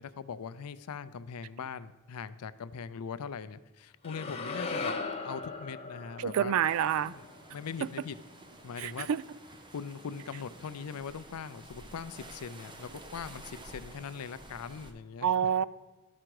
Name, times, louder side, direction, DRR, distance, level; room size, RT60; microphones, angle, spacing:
voice 1, 0.0-4.9 5.2-6.5 7.0-7.2 7.5-8.2 8.6-9.1 9.7-15.5, left 6 dB, 80° left, 0.4 m, -41 dB
sound 1, 4.0-8.3, left 3 dB, 25° left, 0.8 m, -39 dB
voice 2, 6.2-7.1 8.8-9.2 15.2-15.7, right 9 dB, 70° right, 0.3 m, -27 dB
sound 2, 6.6-14.9, right 1 dB, 20° right, 0.7 m, -51 dB
13.0 x 5.0 x 4.6 m
head